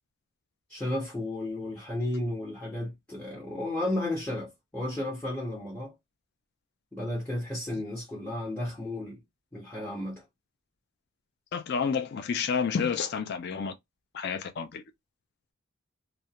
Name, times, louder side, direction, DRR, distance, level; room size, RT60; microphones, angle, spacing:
voice 1, 0.7-5.9 6.9-9.2 9.5-10.2, left 1 dB, 5° left, 0.7 m, -33 dB
voice 2, 11.5-13.7 14.1-14.8, left 6 dB, 50° left, 0.3 m, -30 dB
2.4 x 2.1 x 2.8 m
head